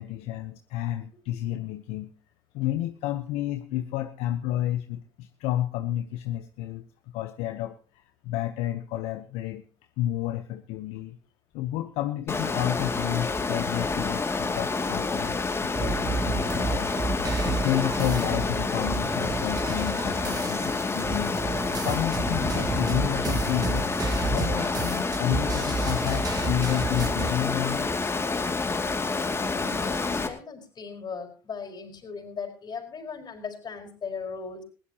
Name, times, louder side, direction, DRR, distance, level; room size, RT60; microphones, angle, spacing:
voice 1, 0.0-2.1 2.5-6.8 7.1-9.6 10.0-11.2 11.5-17.0 17.4-21.4 21.8-23.9 24.2-27.9, left 13 dB, 70° left, 9 dB, 0.9 m, -31 dB
Water, 12.3-30.3, left 3 dB, 20° left, 2.5 m, -28 dB
sound 1, 15.8-27.3, right 4 dB, 35° right, 3.1 m, -31 dB
voice 2, 29.2-34.6, left 5 dB, 40° left, 4 dB, 5.0 m, -38 dB
20.5 x 15.5 x 2.9 m, 0.36 s
hypercardioid pair, 75°, 11 cm